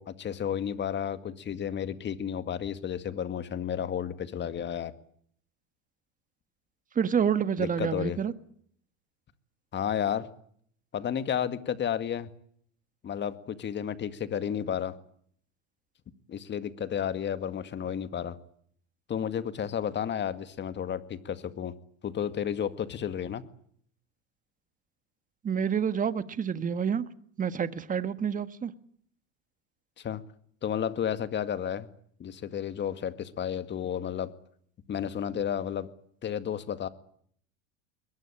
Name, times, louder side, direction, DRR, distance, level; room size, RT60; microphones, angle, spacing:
voice 1, 0.0-4.9 7.6-8.2 9.7-10.3 10.9-12.3 13.0-15.0 16.3-18.4 19.1-21.7 22.0-23.4 30.0-30.2 30.6-31.9 32.2-34.3 34.9-35.9 36.2-36.9, left 9 dB, 30° left, 12 dB, 2.0 m, -32 dB
voice 2, 6.9-8.3 25.4-27.1 27.4-28.7, right 7 dB, 20° right, 13 dB, 1.5 m, -28 dB
22.5 x 21.5 x 8.8 m, 0.64 s
supercardioid pair, 125°, 37 cm